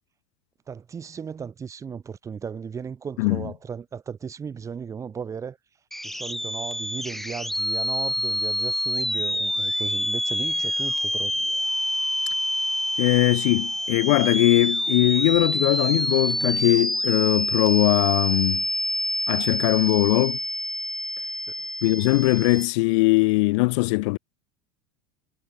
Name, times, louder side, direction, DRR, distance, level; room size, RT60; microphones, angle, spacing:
voice 1, 0.7-5.6 6.0-11.3, right 6 dB, 15° right, 6.1 m, -36 dB
sound 1, 5.9-22.7, left 1 dB, ahead, 0.9 m, -27 dB
voice 2, 13.0-18.6 19.3-20.4 21.8-24.2, left 26 dB, 60° left, 1.5 m, -20 dB
supercardioid pair, 165°, 17 cm